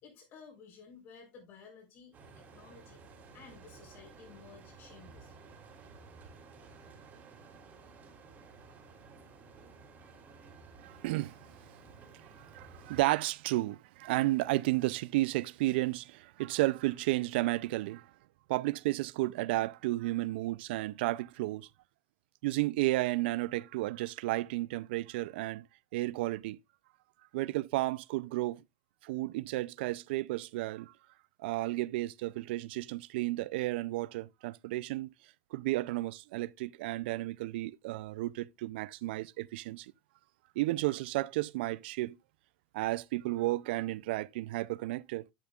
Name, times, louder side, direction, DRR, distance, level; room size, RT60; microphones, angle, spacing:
voice 1, 0.0-3.0 3.3-5.3, left 5 dB, 50° left, 4.3 m, -54 dB
sound 1, 2.1-13.0, right 4 dB, 30° right, 3.3 m, -54 dB
voice 2, 10.8-11.4 12.4-18.1 18.5-21.7 22.4-25.7 25.9-26.6 27.3-28.6 29.0-30.9 31.4-35.1 35.5-39.9 40.6-42.2 42.7-45.2, right 18 dB, 75° right, 0.4 m, -32 dB
11.0 x 7.9 x 2.3 m
supercardioid pair, 135°, 6 cm